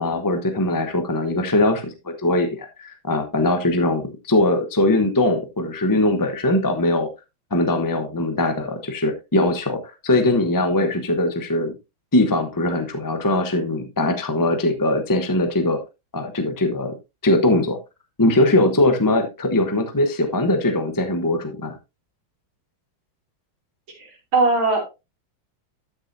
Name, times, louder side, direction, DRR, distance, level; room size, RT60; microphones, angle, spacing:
voice 1, 0.0-7.1 7.5-11.7 12.1-15.8 16.1-16.9 17.2-17.8 18.2-21.8, left 2 dB, 20° left, 7 dB, 0.5 m, -21 dB
voice 2, 24.0-24.9, right 3 dB, 75° right, 0 dB, 3.8 m, -20 dB
12.5 x 6.3 x 2.7 m, 0.24 s
omnidirectional pair, 2.3 m